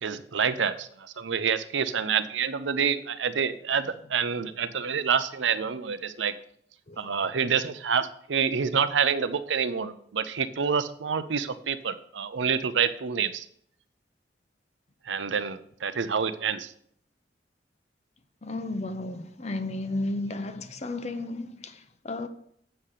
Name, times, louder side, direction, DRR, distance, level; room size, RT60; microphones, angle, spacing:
voice 1, 0.0-6.3 7.0-13.5 15.0-16.7, right 6 dB, 90° right, 0.6 m, -27 dB
voice 2, 18.4-22.3, left 2 dB, 35° left, 0.7 m, -33 dB
7.9 x 5.7 x 6.5 m
head